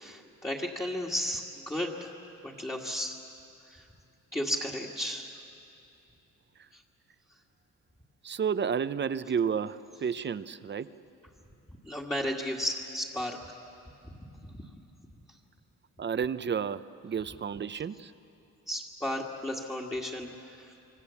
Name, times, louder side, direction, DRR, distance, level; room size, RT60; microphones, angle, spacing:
voice 1, 0.0-2.1 2.4-3.2 3.6-3.8 4.3-5.4 6.7-6.8 11.8-13.4 14.0-14.1 14.4-14.6 18.7-20.7, left 1 dB, 10° left, -3 dB, 2.1 m, -34 dB
voice 2, 8.2-10.9 16.0-18.1, right 7 dB, 35° right, 14 dB, 0.8 m, -31 dB
26.0 x 23.5 x 7.2 m, 2.8 s
cardioid pair, 90°, 30 cm